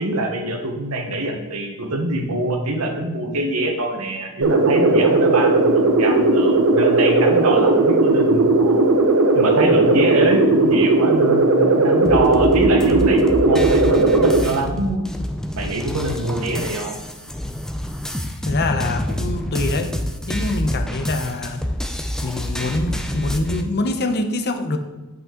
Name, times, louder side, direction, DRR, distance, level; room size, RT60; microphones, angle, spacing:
voice 1, 0.0-8.9 9.3-15.1 15.5-16.9, right 2 dB, 85° right, 3 dB, 1.1 m, -24 dB
sound 1, 4.4-14.4, right 2 dB, 65° right, 0.8 m, -16 dB
sound 2, 12.1-23.6, equal, 5° left, 0.4 m, -27 dB
voice 2, 18.4-19.9 20.3-21.6 22.2-24.8, left 2 dB, 50° left, 6 dB, 0.7 m, -24 dB
8.0 x 5.3 x 3.7 m, 1.1 s
head